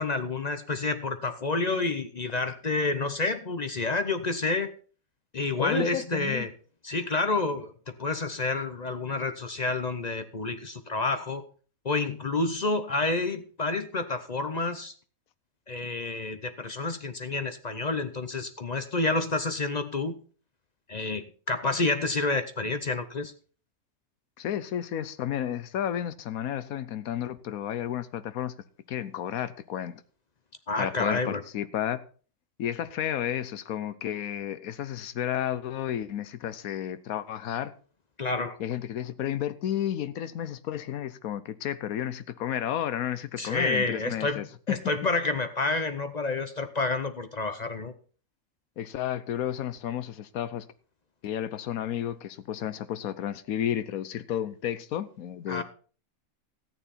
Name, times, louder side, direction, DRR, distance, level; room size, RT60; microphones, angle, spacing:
voice 1, 0.0-4.7 5.3-6.5 6.8-7.7 8.0-11.4 11.8-14.9 15.7-20.2 20.9-23.3 30.7-31.4 38.2-38.6 43.4-44.4 44.7-47.9 55.5-55.6, left 3 dB, 40° left, 0.7 m, -29 dB
voice 2, 5.6-6.5 24.4-28.5 28.9-30.0 30.8-32.0 32.6-37.7 38.6-44.8 48.8-50.7 51.2-55.6, left 10 dB, 80° left, 1.2 m, -32 dB
14.0 x 9.1 x 4.2 m
omnidirectional pair, 1.5 m